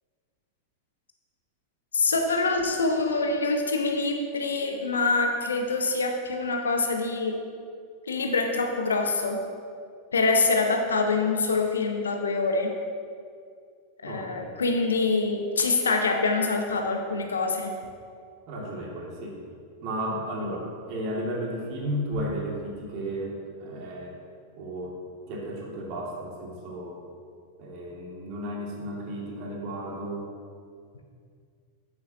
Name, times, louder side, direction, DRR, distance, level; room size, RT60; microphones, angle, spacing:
voice 1, 1.9-7.4 8.1-9.4 10.1-12.7 14.0-17.7, left 3 dB, 70° left, 3 dB, 1.0 m, -25 dB
voice 2, 14.0-14.5 18.5-19.4 19.8-24.1 24.6-25.0 25.3-27.0 27.6-30.3, equal, 40° right, -2 dB, 2.2 m, -33 dB
9.4 x 9.1 x 2.8 m, 2.2 s
figure-of-eight pair, 90°, 0 cm